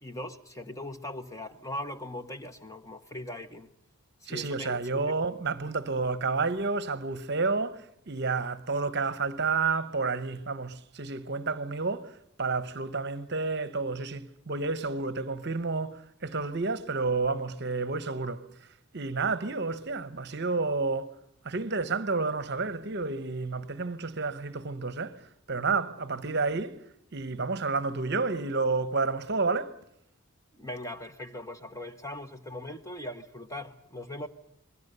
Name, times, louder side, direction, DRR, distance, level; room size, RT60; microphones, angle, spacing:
voice 1, 0.0-3.7 4.2-4.8 30.5-34.3, left 1 dB, 15° left, 1.0 m, -40 dB
voice 2, 4.3-21.2 21.4-29.8, right 4 dB, 50° right, 0.9 m, -30 dB
27.5 x 21.0 x 6.8 m
head